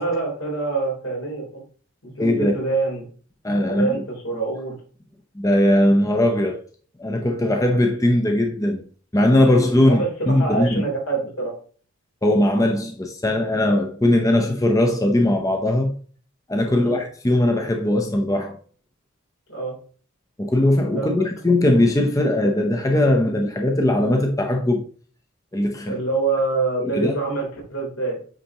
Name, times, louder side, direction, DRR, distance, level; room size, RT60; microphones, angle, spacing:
voice 1, 0.0-1.6 2.0-3.1 3.6-4.8 9.8-11.6 16.7-17.0 19.5-19.8 21.0-21.2 25.9-28.2, right 3 dB, 80° left, 3.6 m, -26 dB
voice 2, 2.2-2.5 3.4-3.9 5.4-6.6 7.0-8.8 9.1-10.8 12.2-16.0 16.5-18.6 20.4-24.8 25.5-26.0 26.8-27.1, left 1 dB, 15° left, 0.7 m, -19 dB
9.1 x 4.2 x 2.9 m
head